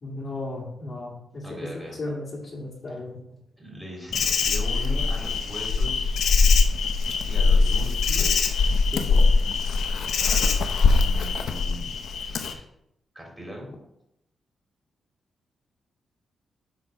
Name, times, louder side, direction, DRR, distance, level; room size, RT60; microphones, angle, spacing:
voice 1, 0.0-3.2 8.9-9.2, left 2 dB, 40° left, -3 dB, 2.3 m, -35 dB
voice 2, 1.4-2.0 3.6-6.2 7.3-8.8 10.9-12.6 13.1-13.7, equal, 5° right, -2 dB, 2.9 m, -40 dB
Insect, 4.1-12.5, left 4 dB, 80° left, 0.7 m, -22 dB
8.3 x 4.0 x 5.9 m, 0.79 s
cardioid pair, 105°, 0 cm